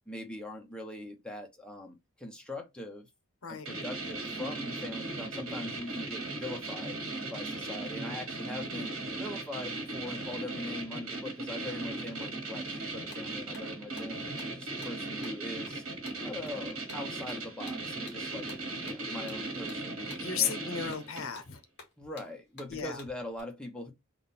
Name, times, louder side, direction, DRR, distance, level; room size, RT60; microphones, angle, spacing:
voice 1, 0.1-3.1 3.5-7.0 7.3-8.9 9.2-14.2 14.5-15.8 16.2-18.5 18.8-20.0 20.4-20.6 22.0-23.9, left 1 dB, 5° left, 0.9 m, -42 dB
sound 1, 3.7-21.4, right 2 dB, 80° right, 1.5 m, -38 dB
voice 2, 8.6-8.9 20.2-21.6 22.7-23.0, left 7 dB, 65° left, 0.8 m, -34 dB
sound 2, 13.1-23.4, left 3 dB, 50° left, 1.9 m, -54 dB
3.7 x 2.4 x 4.1 m
head